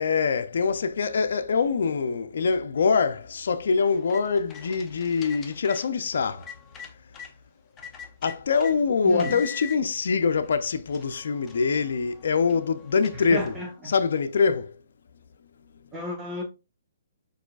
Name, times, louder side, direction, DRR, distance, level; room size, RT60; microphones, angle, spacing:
voice 1, 0.0-6.4 8.2-13.5 13.8-14.8, left 5 dB, 70° left, 0.4 m, -24 dB
sound 1, 3.9-7.3 7.8-8.7 9.2-9.8 10.4-10.5 10.9-13.7, left 7 dB, 15° left, 0.6 m, -44 dB
voice 2, 9.0-9.4 13.3-13.9 15.9-16.4, equal, 10° right, 1.4 m, -32 dB
4.7 x 4.7 x 2.3 m
hypercardioid pair, 150°, 0 cm